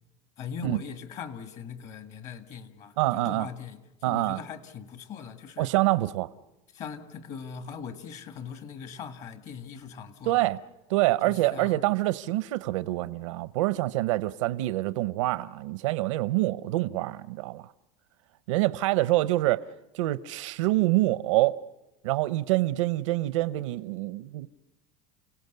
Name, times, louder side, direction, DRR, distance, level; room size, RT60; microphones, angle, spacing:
voice 1, 0.4-5.7 6.7-10.5 11.2-11.8, left 6 dB, 50° left, 2.0 m, -40 dB
voice 2, 3.0-3.5 4.0-4.4 5.6-6.3 10.2-10.6 10.9-17.7 18.5-19.6 19.9-21.5 22.0-24.5, right 18 dB, 85° right, 0.7 m, -26 dB
29.5 x 17.5 x 6.8 m
supercardioid pair, 130°, 16 cm